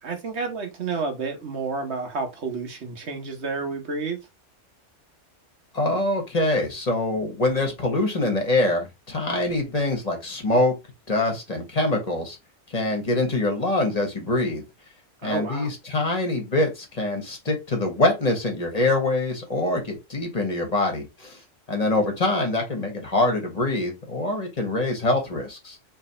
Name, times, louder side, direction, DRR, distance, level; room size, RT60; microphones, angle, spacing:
voice 1, 0.0-4.2 15.2-15.7, right 4 dB, 65° right, 1.4 m, -30 dB
voice 2, 5.7-10.7 11.1-12.4 12.7-14.6 15.2-21.4 21.7-25.8, left 2 dB, 30° left, 1.4 m, -24 dB
3.3 x 3.3 x 4.2 m
omnidirectional pair, 1.3 m